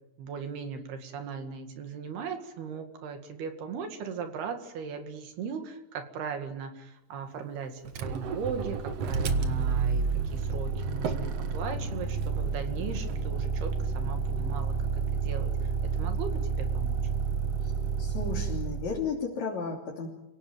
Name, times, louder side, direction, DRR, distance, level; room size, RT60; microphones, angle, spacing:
voice 1, 0.2-17.0, right 6 dB, 70° right, 6 dB, 4.1 m, -38 dB
Motor vehicle (road), 7.9-19.0, right 5 dB, 55° right, 1.8 m, -30 dB
voice 2, 18.0-20.1, left 5 dB, 45° left, -2 dB, 4.3 m, -33 dB
29.5 x 18.0 x 9.1 m, 0.89 s
omnidirectional pair, 4.7 m